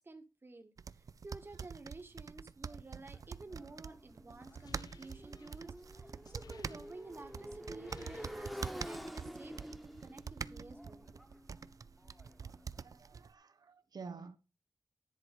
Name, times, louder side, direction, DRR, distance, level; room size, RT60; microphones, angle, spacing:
voice 1, 0.0-11.1, right 3 dB, 35° right, 1.3 m, -52 dB
sound 1, 0.8-13.3, right 6 dB, 60° right, 0.4 m, -46 dB
Motorcycle, 3.1-13.0, equal, ahead, 1.1 m, -49 dB
sound 2, 4.4-7.3 7.6-9.0, left 5 dB, 85° left, 0.6 m, -60 dB
voice 2, 12.8-14.4, right 5 dB, 85° right, 1.0 m, -50 dB
10.5 x 4.5 x 5.2 m
wide cardioid pair, 115°, 6 cm